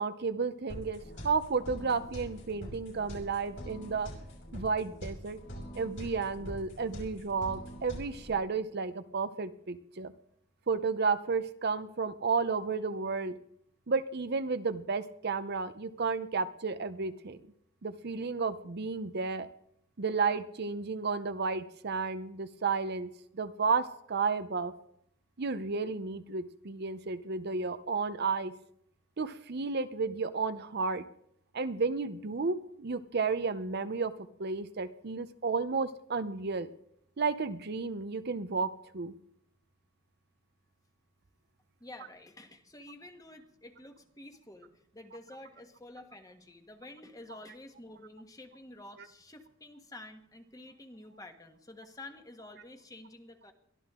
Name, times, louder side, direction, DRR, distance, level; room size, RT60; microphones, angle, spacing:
voice 1, 0.0-4.1 4.5-5.4 5.7-10.1 10.7-13.4 13.9-17.4 17.8-19.5 20.0-24.7 25.4-28.5 29.2-31.0 31.5-34.1 34.4-36.7 37.2-39.1, right 4 dB, 55° right, 11 dB, 0.7 m, -32 dB
sound 1, 0.7-8.4, equal, 65° left, 6.1 m, -44 dB
voice 2, 41.8-53.5, left 2 dB, 20° left, 6 dB, 1.4 m, -50 dB
22.5 x 13.5 x 3.7 m, 0.71 s
head